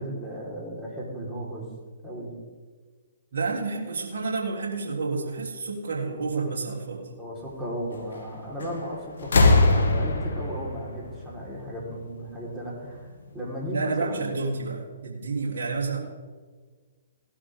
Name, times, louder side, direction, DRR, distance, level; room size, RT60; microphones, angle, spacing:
voice 1, 0.0-1.7 2.0-2.3 7.2-13.1 13.3-14.3, equal, 10° right, -5 dB, 4.4 m, -35 dB
voice 2, 3.3-7.1 13.7-16.0, right 4 dB, 60° right, -3 dB, 3.4 m, -29 dB
sound 1, 8.6-8.9 9.2-12.0 13.1-13.2, left 2 dB, 70° left, 1.9 m, -22 dB
17.5 x 12.0 x 3.8 m, 1.5 s
figure-of-eight pair, 130°, 0 cm